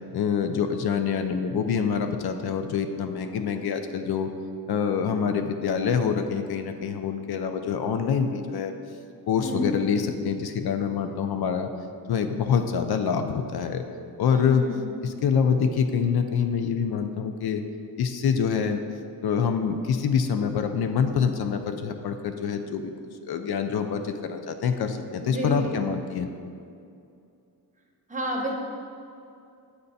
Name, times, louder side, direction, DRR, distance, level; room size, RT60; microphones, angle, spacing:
voice 1, 0.1-4.3 4.7-8.7 9.3-11.7 12.1-13.8 14.2-14.6 15.0-17.6 18.0-18.8 19.2-22.9 23.3-26.3, left 6 dB, 75° left, 7 dB, 0.5 m, -26 dB
voice 2, 9.4-9.7 14.3-14.8 25.2-25.8 28.1-28.5, left 1 dB, 20° right, -1 dB, 0.9 m, -30 dB
7.9 x 3.3 x 4.0 m, 2.5 s
wide cardioid pair, 105°, 38 cm